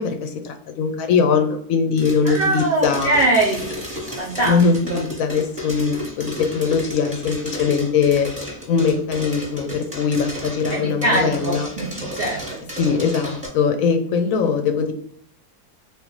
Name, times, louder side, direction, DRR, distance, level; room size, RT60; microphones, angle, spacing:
voice 1, 0.0-3.2 4.4-8.3 8.7-11.7 12.8-14.9, left 5 dB, 70° left, 6 dB, 0.9 m, -21 dB
sound 1, 2.0-13.5, equal, 5° right, 1.0 m, -33 dB
voice 2, 2.2-3.7 4.2-4.6 4.9-5.0 10.7-12.6, right 2 dB, 55° right, -2 dB, 0.6 m, -22 dB
3.7 x 2.4 x 3.9 m, 0.64 s
omnidirectional pair, 1.7 m